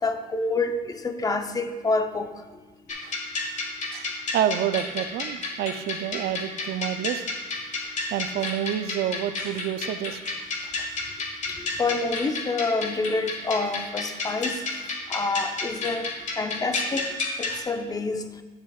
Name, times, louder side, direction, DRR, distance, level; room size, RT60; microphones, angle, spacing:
voice 1, 0.0-2.3 11.5-14.6 15.1-16.1 16.4-17.1 17.4-18.3, left 3 dB, 20° left, 7 dB, 0.6 m, -27 dB
sound 1, 2.9-17.6, left 3 dB, 45° left, 1.3 m, -31 dB
voice 2, 3.9-7.2 8.1-10.2 17.5-17.7, right 10 dB, 70° right, 11 dB, 0.5 m, -28 dB
10.0 x 7.1 x 2.4 m, 1.3 s
cardioid pair, 110°, 17 cm